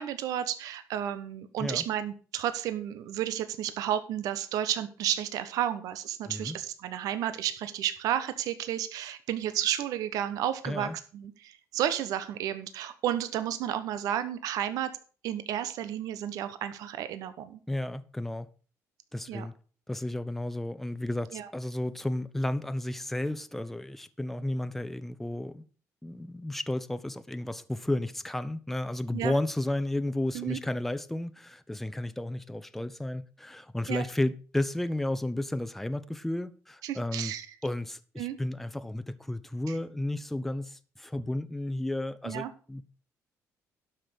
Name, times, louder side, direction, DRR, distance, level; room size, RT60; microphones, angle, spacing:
voice 1, 0.0-14.9 15.2-17.6 19.3-19.5 21.3-21.5 29.1-29.3 30.3-30.6 33.9-34.0 36.8-37.5 38.2-38.4 39.7-39.8 42.2-42.5, right 11 dB, 80° right, 1.1 m, -32 dB
voice 2, 6.2-6.6 10.6-11.0 17.7-18.5 19.1-19.5 19.9-25.6 26.0-37.3 37.6-42.8, left 1 dB, 5° left, 0.7 m, -33 dB
12.0 x 6.0 x 6.2 m
cardioid pair, 135°, 6 cm